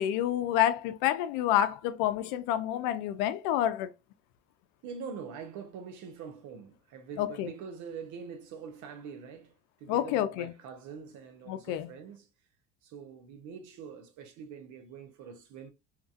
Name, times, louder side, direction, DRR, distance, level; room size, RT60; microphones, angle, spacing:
voice 1, 0.0-3.9 7.2-7.5 9.9-10.5 11.5-11.9, left 12 dB, 75° left, 0.5 m, -28 dB
voice 2, 4.8-12.3 12.8-15.7, right 6 dB, 60° right, 0.8 m, -44 dB
2.8 x 2.6 x 2.4 m
cardioid pair, 130°, 34 cm